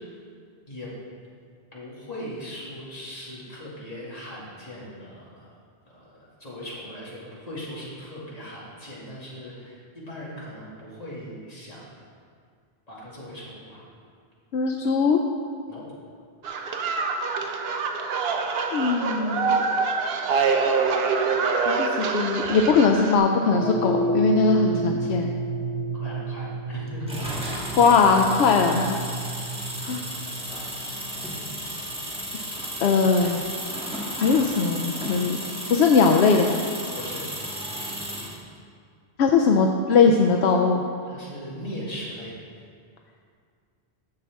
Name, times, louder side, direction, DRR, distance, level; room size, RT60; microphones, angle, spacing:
voice 1, 1.7-5.5 5.9-11.9 12.9-13.8 15.7-15.8 25.9-27.2 37.0-37.2 41.1-42.3, equal, 35° left, -8 dB, 2.5 m, -39 dB
voice 2, 14.5-15.2 18.7-19.6 21.7-25.3 27.8-29.0 29.8-30.0 32.8-33.4 34.2-35.4 35.7-36.6 39.2-40.9, left 5 dB, 80° left, 2 dB, 0.8 m, -20 dB
sound 1, 16.4-23.2, right 4 dB, 70° right, 0.9 m, -25 dB
sound 2, 23.5-32.0, right 2 dB, 45° right, 1.3 m, -30 dB
sound 3, 27.1-38.4, equal, 5° right, 1.3 m, -34 dB
11.0 x 7.4 x 3.5 m, 2.2 s
omnidirectional pair, 1.1 m